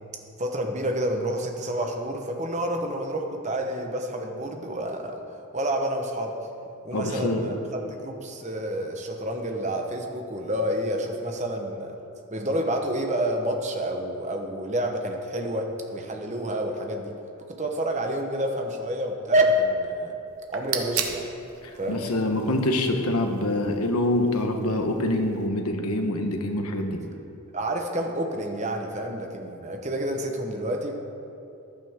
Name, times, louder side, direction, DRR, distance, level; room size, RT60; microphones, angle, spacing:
voice 1, 0.4-5.2 5.5-6.3 6.8-12.0 12.3-17.1 17.5-20.1 20.5-21.3 21.8-22.0 27.5-30.9, right 1 dB, 30° right, 3 dB, 1.0 m, -28 dB
voice 2, 6.9-7.4 21.6-27.0, left 1 dB, 85° left, 4 dB, 1.2 m, -25 dB
sound 1, 20.3-25.5, right 8 dB, 75° right, 1.0 m, -37 dB
14.5 x 11.0 x 3.6 m, 2.8 s
head